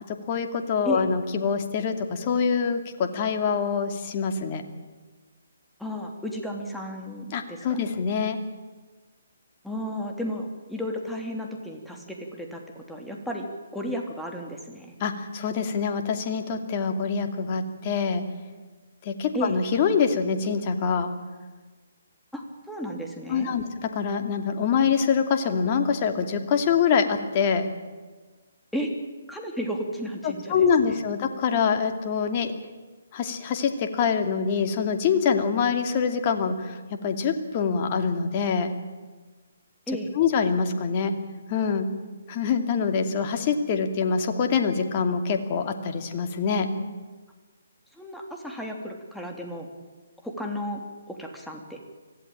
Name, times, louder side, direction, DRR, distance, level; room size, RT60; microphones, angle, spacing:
voice 1, 0.1-4.6 7.3-8.4 15.0-18.2 19.0-21.1 23.3-27.7 30.2-32.5 33.1-38.7 40.1-41.1 41.5-41.9 42.3-46.7, left 6 dB, 35° left, 6 dB, 2.6 m, -25 dB
voice 2, 5.8-7.9 9.6-13.5 13.7-14.9 19.3-19.6 22.3-23.5 28.7-28.9 29.3-31.0 39.9-40.1 48.0-49.7 50.2-50.8 51.1-51.8, equal, ahead, 1 dB, 3.1 m, -33 dB
25.0 x 17.0 x 9.0 m, 1.4 s
figure-of-eight pair, 140°, 0 cm